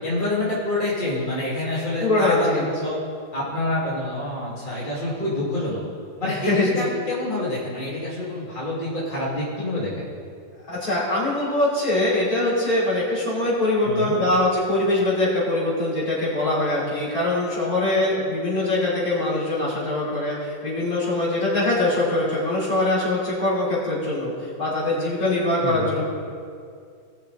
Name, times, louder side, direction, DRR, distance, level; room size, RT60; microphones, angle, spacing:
voice 1, 0.0-3.0 3.3-5.8 6.2-10.1 13.8-14.2 25.6-25.9, left 1 dB, 25° left, -8 dB, 2.6 m, -27 dB
voice 2, 2.0-2.7 6.2-6.8 10.7-26.1, left 2 dB, 60° left, -8 dB, 3.9 m, -23 dB
19.5 x 6.6 x 3.9 m, 2.3 s
omnidirectional pair, 1.8 m